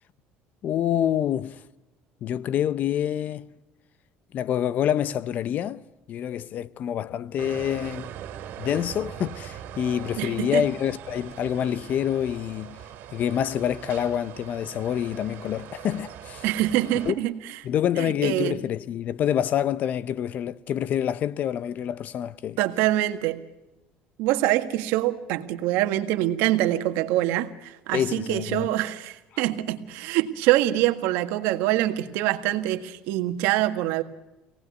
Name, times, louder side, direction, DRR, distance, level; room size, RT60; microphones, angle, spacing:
voice 1, 0.6-1.6 2.2-3.5 4.3-5.8 6.1-8.1 8.6-12.8 13.1-16.4 17.0-17.2 17.6-22.6 27.9-28.7, left 10 dB, 50° left, 0.8 m, -27 dB
sound 1, 7.4-17.1, right 10 dB, 65° right, 2.8 m, -41 dB
voice 2, 10.2-10.6 16.4-17.6 18.0-18.6 22.6-23.4 24.2-34.0, right 15 dB, 85° right, 1.7 m, -25 dB
25.5 x 18.5 x 9.5 m
cardioid pair, 130°, 4 cm